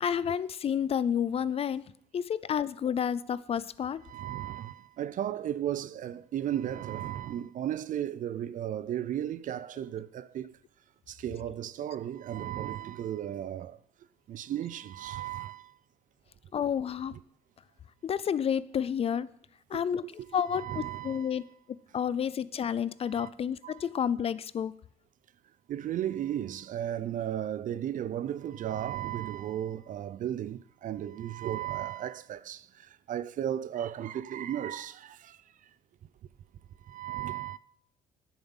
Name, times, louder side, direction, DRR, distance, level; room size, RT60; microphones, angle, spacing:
voice 1, 0.0-1.8 2.1-4.0 16.5-17.2 18.0-19.3 19.7-20.0 20.3-21.4 21.9-24.7, left 8 dB, 35° left, 0.4 m, -30 dB
voice 2, 4.0-10.5 11.1-13.8 14.3-15.7 19.7-21.4 23.0-23.3 23.6-23.8 25.7-35.4 36.9-37.6, right 11 dB, 50° right, 0.5 m, -35 dB
9.6 x 7.3 x 7.2 m
cardioid pair, 110°, 17 cm